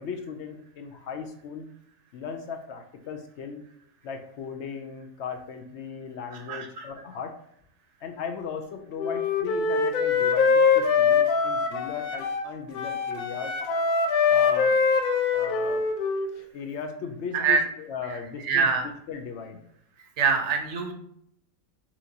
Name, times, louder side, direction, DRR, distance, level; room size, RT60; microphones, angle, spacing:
voice 1, 0.0-1.7 2.1-3.6 4.0-7.4 8.0-13.6 14.3-14.8 15.3-15.9 16.5-19.6, left 6 dB, 65° left, 5 dB, 0.7 m, -37 dB
voice 2, 6.5-6.9 17.3-17.6 18.4-18.8 20.2-20.9, right 5 dB, 60° right, 3 dB, 1.0 m, -24 dB
Wind instrument woodwind instrument, 9.0-12.5 12.7-16.3, left 5 dB, 90° left, 1.1 m, -23 dB
5.9 x 2.5 x 2.8 m, 0.70 s
omnidirectional pair, 1.5 m